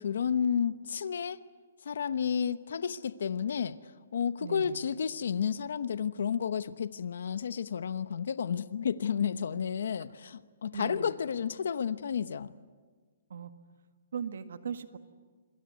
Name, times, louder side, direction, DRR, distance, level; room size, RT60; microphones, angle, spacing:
voice 1, 0.0-1.4 1.8-3.8 4.1-12.5, left 7 dB, 70° left, 14 dB, 0.9 m, -31 dB
voice 2, 4.4-4.8 10.7-11.2 13.3-13.5 14.1-15.0, right 7 dB, 70° right, 9 dB, 1.7 m, -38 dB
27.5 x 22.0 x 9.5 m, 1.5 s
hypercardioid pair, 165°, 0 cm